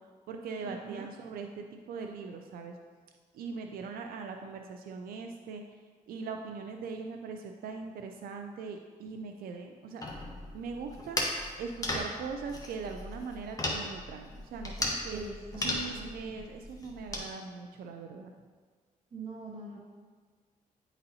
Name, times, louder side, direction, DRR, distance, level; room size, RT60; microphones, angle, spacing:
voice 1, 0.0-2.8 3.3-5.8 6.1-10.0 10.5-15.2 15.6-18.3, right 5 dB, 90° right, 4 dB, 0.4 m, -41 dB
voice 2, 0.6-1.0 15.1-16.1 19.1-19.8, right 2 dB, 45° right, -3 dB, 0.8 m, -42 dB
sound 1, 10.0-17.3, left 1 dB, 25° left, 1.1 m, -36 dB
9.4 x 4.0 x 2.7 m, 1.5 s
cardioid pair, 90°, 15 cm